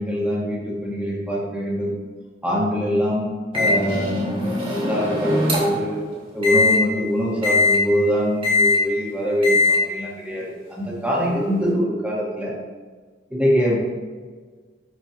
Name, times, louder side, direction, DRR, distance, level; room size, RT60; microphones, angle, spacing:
voice 1, 0.0-1.9 2.4-6.0 6.3-12.5 13.3-13.8, equal, 5° right, -5 dB, 1.6 m, -23 dB
Microwave oven, 3.5-5.9 6.4-6.8 7.4-7.8 8.4-8.8 9.4-9.8, left 3 dB, 30° right, 1.8 m, -20 dB
10.5 x 4.4 x 3.0 m, 1.5 s
head